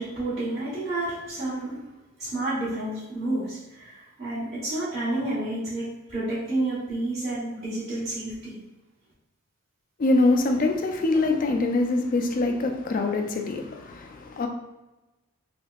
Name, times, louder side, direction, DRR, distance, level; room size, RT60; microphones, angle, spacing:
voice 1, 0.0-1.8 2.2-8.6, right 2 dB, 30° right, 1.0 m, -30 dB
voice 2, 10.0-14.5, left 2 dB, 40° left, 0.3 m, -24 dB
3.4 x 2.8 x 2.3 m
head